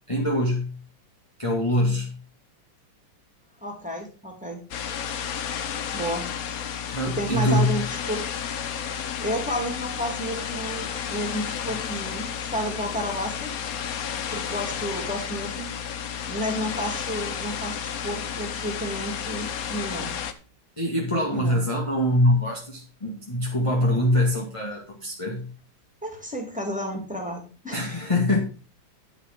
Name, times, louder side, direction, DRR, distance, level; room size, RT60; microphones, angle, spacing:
voice 1, 0.1-0.7 1.4-2.2 6.9-7.8 20.8-25.5 27.7-28.4, left 1 dB, 15° left, -2 dB, 2.0 m, -24 dB
voice 2, 3.6-4.6 5.9-6.3 7.0-8.2 9.2-13.5 14.3-15.6 16.3-17.8 18.0-20.1 21.3-21.6 26.0-27.9, equal, 5° right, 1 dB, 3.0 m, -31 dB
sound 1, 4.7-20.3, left 8 dB, 55° left, 1.2 m, -32 dB
10.5 x 7.2 x 5.3 m, 0.35 s
omnidirectional pair, 2.1 m